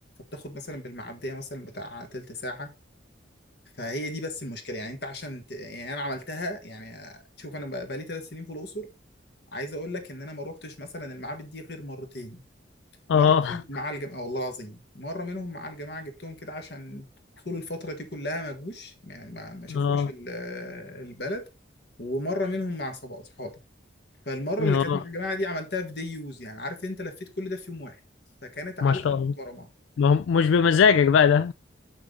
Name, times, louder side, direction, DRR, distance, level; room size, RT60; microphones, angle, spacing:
voice 1, 0.3-2.7 3.8-8.9 9.5-12.4 13.1-17.1 17.4-21.4 22.0-23.5 24.2-28.0 28.4-29.7, left 1 dB, 60° left, 1.6 m, -35 dB
voice 2, 13.1-13.5 19.7-20.1 24.6-25.0 28.8-29.3 30.0-31.5, left 6 dB, 80° left, 0.3 m, -20 dB
6.7 x 6.1 x 3.8 m
head